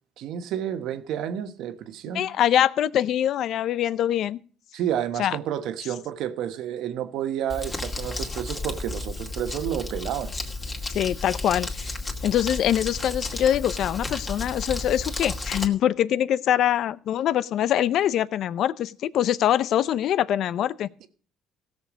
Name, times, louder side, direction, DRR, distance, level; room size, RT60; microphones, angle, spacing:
voice 1, 0.2-2.3 4.7-10.3 21.0-21.1, right 10 dB, 75° right, 1.2 m, -30 dB
voice 2, 2.1-4.4 5.2-5.4 10.9-11.9 12.2-20.9, left 11 dB, 65° left, 0.6 m, -24 dB
Crumpling crinkling, 7.5-15.7, left 2 dB, 25° left, 2.3 m, -33 dB
16.5 x 6.9 x 5.0 m
cardioid pair, 100°, 0 cm